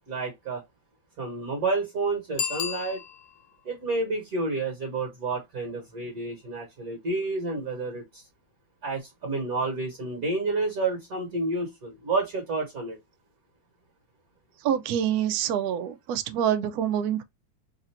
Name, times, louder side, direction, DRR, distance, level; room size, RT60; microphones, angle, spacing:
voice 1, 0.1-0.6 1.2-3.0 3.6-8.2 8.8-13.0, right 3 dB, 50° right, 1.4 m, -30 dB
Bicycle bell, 2.3-3.5 9.0-9.1, left 8 dB, 75° left, 1.1 m, -32 dB
voice 2, 14.6-17.2, right 9 dB, 75° right, 0.8 m, -26 dB
3.3 x 2.5 x 4.2 m
omnidirectional pair, 2.1 m